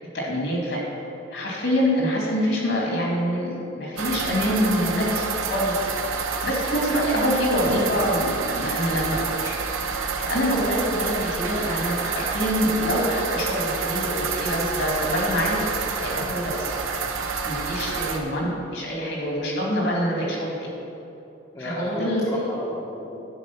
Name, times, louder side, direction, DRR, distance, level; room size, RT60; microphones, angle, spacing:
voice 1, 0.1-0.8 1.3-5.2 5.5-5.9 6.4-9.5 9.9-16.7 17.4-20.8 21.6-22.2, equal, 60° left, -2 dB, 2.4 m, -25 dB
sound 1, 4.0-18.2, right 5 dB, 80° right, 0.9 m, -28 dB
voice 2, 21.5-23.2, left 1 dB, 20° left, -5 dB, 1.1 m, -33 dB
10.0 x 5.1 x 7.1 m, 2.9 s
head